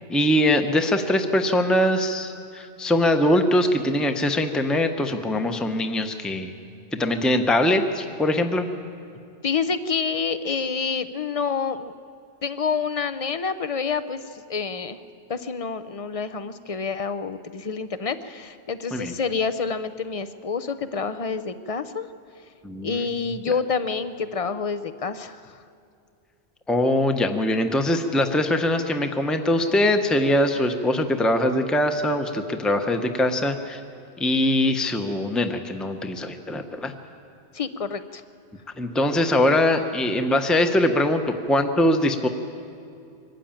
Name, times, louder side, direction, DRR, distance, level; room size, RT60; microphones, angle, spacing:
voice 1, 0.1-6.5 6.9-8.7 18.9-19.1 22.6-23.0 26.7-33.8 34.2-36.9 38.8-42.3, left 1 dB, ahead, 6 dB, 0.8 m, -22 dB
voice 2, 9.4-11.9 12.4-15.0 15.3-22.1 22.8-25.6 37.5-38.2, left 5 dB, 40° left, 12 dB, 0.6 m, -28 dB
23.0 x 13.0 x 8.9 m, 2.5 s
omnidirectional pair, 1.1 m